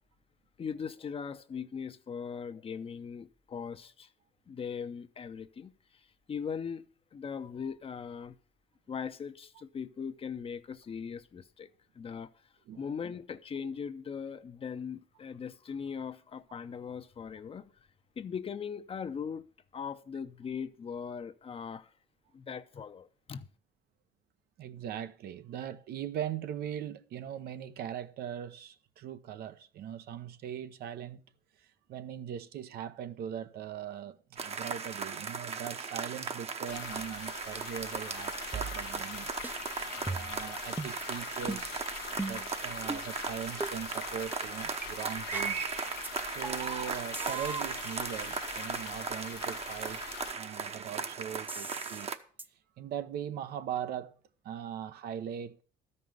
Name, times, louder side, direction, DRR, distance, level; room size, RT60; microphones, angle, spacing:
voice 1, 0.6-4.1 4.5-6.8 7.1-8.3 8.9-11.7 11.9-12.3 12.8-17.7 18.2-19.4 19.7-21.9 22.3-23.5, left 6 dB, 35° left, 0.7 m, -39 dB
voice 2, 24.6-31.2 31.6-39.3 39.9-45.6 46.3-50.0 50.4-52.1 52.8-54.1 54.4-55.6, right 9 dB, 70° right, 0.8 m, -40 dB
sound 1, 34.4-52.2, right 5 dB, 40° right, 1.0 m, -37 dB
sound 2, 36.7-50.3, left 13 dB, 85° left, 0.8 m, -44 dB
sound 3, 38.5-39.2 39.4-39.6 40.1-40.4 40.8-41.0 41.5-41.7 42.2-42.5 42.9-43.1 43.6-43.7 44.3-44.4 44.8-44.9 45.3-45.6 46.0-46.1 46.4-46.8 47.1-49.0 51.5-52.1 52.4-52.5, right 3 dB, 10° right, 0.5 m, -40 dB
13.0 x 5.4 x 7.8 m
cardioid pair, 110°, 17 cm